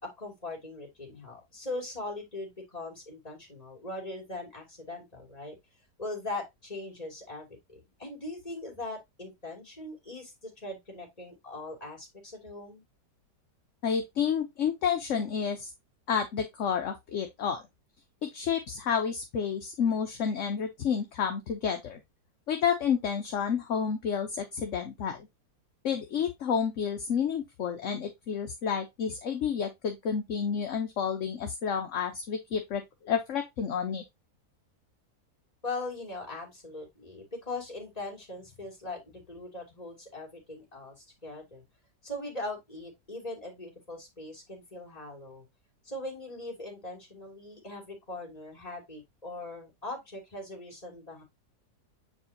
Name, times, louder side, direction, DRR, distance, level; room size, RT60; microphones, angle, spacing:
voice 1, 0.0-5.6 6.0-12.8 35.6-41.6 42.0-45.4 45.8-51.2, left 2 dB, 20° left, 2.9 m, -40 dB
voice 2, 13.8-15.7 16.1-17.6 18.2-22.0 22.5-25.3 25.8-34.0, left 7 dB, 55° left, 1.1 m, -30 dB
7.3 x 4.8 x 2.8 m
omnidirectional pair, 1.8 m